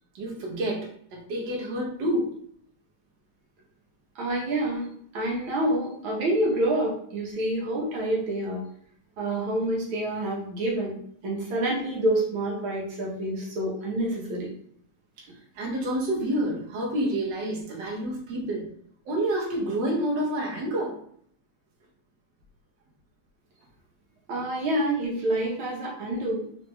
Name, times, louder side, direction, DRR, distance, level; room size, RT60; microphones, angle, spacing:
voice 1, 0.1-2.3 15.5-18.7 19.1-21.0, right 1 dB, 65° right, -1 dB, 1.5 m, -28 dB
voice 2, 4.2-4.9 5.1-8.6 9.2-11.0 11.2-14.5 24.3-26.5, right 1 dB, 85° right, -3 dB, 2.0 m, -27 dB
4.2 x 3.1 x 3.3 m, 0.63 s
omnidirectional pair, 2.2 m